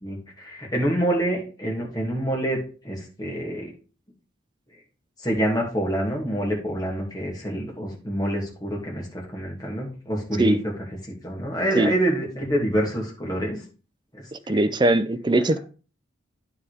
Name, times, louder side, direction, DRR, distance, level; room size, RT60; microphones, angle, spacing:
voice 1, 0.0-2.6 2.8-3.7 5.2-10.6 11.2-13.6 14.5-14.6, right 1 dB, 20° left, -2 dB, 2.4 m, -26 dB
voice 2, 14.3-15.6, right 2 dB, 20° right, 12 dB, 0.4 m, -21 dB
9.5 x 4.2 x 4.9 m, 0.37 s
head